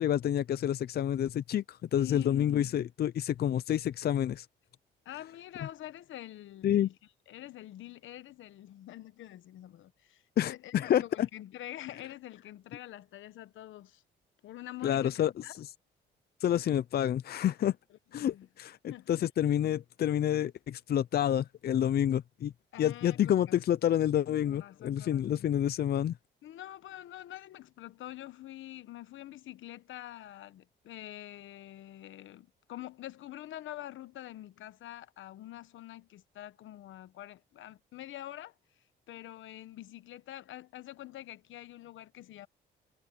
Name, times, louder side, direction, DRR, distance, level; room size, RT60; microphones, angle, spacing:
voice 1, 0.0-4.5 6.6-6.9 10.4-11.3 14.8-15.7 16.4-17.8 18.1-22.5 22.8-26.2, left 10 dB, 50° left, 0.5 m, -28 dB
voice 2, 2.0-2.7 5.0-6.9 7.3-14.0 14.4-15.5 17.9-18.5 18.9-19.1 22.7-23.6 24.5-25.5 26.4-38.5 39.1-42.5, left 14 dB, 75° left, 1.1 m, -46 dB
cardioid pair, 90°, 20 cm